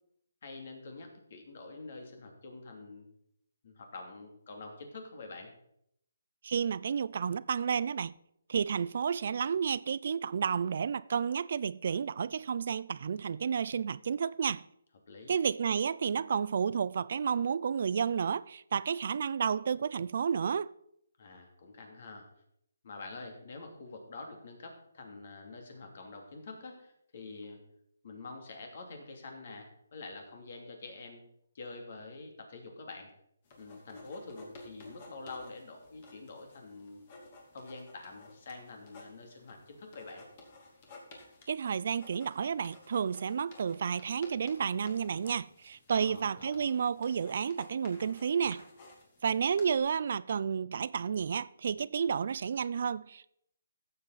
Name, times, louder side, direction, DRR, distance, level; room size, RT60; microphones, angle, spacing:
voice 1, 0.4-3.1 3.6-5.5 15.1-15.4 21.2-22.3 22.8-27.6 28.0-31.2 31.5-33.1 33.6-37.0 37.5-40.3 45.9-46.8, left 3 dB, 45° left, 2.8 m, -46 dB
voice 2, 6.4-8.1 8.5-14.6 15.3-20.7 41.5-48.6 49.2-53.3, right 7 dB, 50° right, 0.3 m, -31 dB
sound 1, 33.4-49.8, left 2 dB, 30° left, 2.5 m, -55 dB
15.0 x 7.7 x 4.1 m
hypercardioid pair, 165°, 0 cm